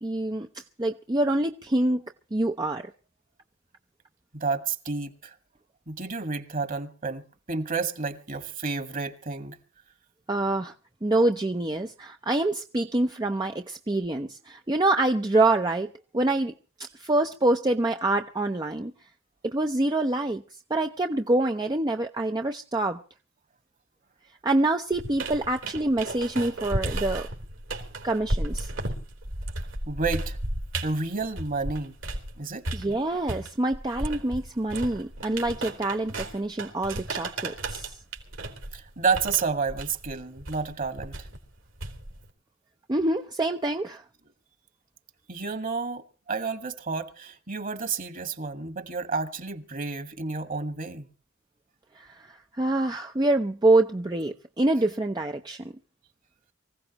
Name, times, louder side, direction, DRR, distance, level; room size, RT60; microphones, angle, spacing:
voice 1, 0.0-2.0 2.3-2.9 10.3-10.7 11.0-15.9 16.1-16.5 16.8-18.9 19.4-20.4 20.7-23.0 24.4-27.3 28.0-28.7 32.7-38.0 42.9-44.0 51.9-55.7, right 2 dB, 20° right, 0.7 m, -26 dB
voice 2, 4.3-5.3 5.9-9.6 29.9-30.4 30.8-31.9 32.4-32.7 38.7-41.3 45.3-51.1, right 4 dB, 45° right, 1.9 m, -30 dB
sound 1, 24.9-32.3 32.6-42.3, right 1 dB, 70° right, 3.6 m, -34 dB
24.5 x 16.0 x 3.0 m
head